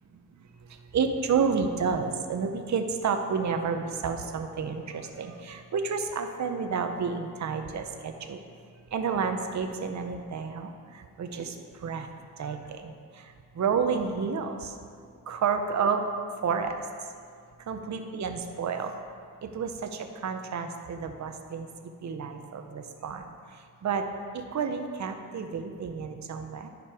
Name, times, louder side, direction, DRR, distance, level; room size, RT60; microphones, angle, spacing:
voice 1, 0.9-8.4 8.9-11.6 11.8-12.1 12.4-14.8 15.3-16.0 16.4-16.8 17.7-18.9 19.5-21.7 22.0-23.2 23.8-24.0 24.3-26.7, right 5 dB, 55° right, 6 dB, 0.7 m, -30 dB
10.0 x 5.2 x 4.7 m, 2.2 s
cardioid pair, 80°, 34 cm